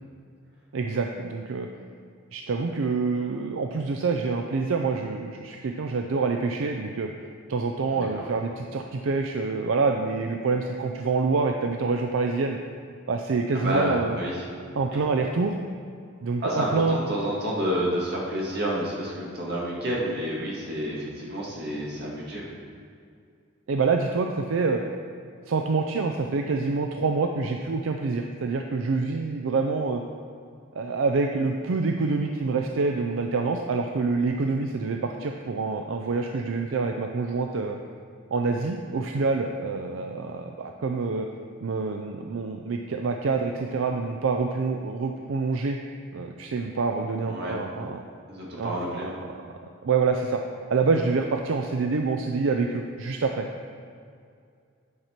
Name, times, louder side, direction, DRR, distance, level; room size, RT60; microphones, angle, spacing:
voice 1, 0.7-1.7 2.3-7.1 7.5-12.6 13.1-14.1 14.8-15.6 16.2-17.0 23.7-24.8 25.5-30.0 30.7-37.8 38.3-41.3 41.6-45.8 46.1-48.0 48.6-49.4 49.8-50.4 50.7-53.5, right 4 dB, 75° right, 3 dB, 0.4 m, -26 dB
voice 2, 7.9-8.2 13.5-14.5 14.9-15.0 16.4-22.5 47.3-47.6 48.3-49.2, equal, 50° right, -5 dB, 1.9 m, -29 dB
9.5 x 5.8 x 4.5 m, 2.3 s
head